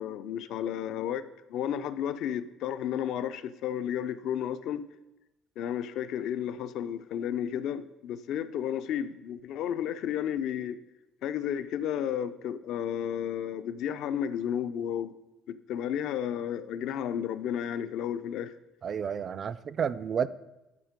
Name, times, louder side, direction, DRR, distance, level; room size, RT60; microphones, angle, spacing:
voice 1, 0.0-4.9 5.6-10.8 11.2-15.1 15.5-18.5, left 9 dB, 65° left, 13 dB, 0.4 m, -32 dB
voice 2, 18.8-20.3, right 7 dB, 35° right, 17 dB, 0.3 m, -31 dB
11.0 x 4.4 x 5.1 m, 0.99 s
cardioid pair, 135°, 0 cm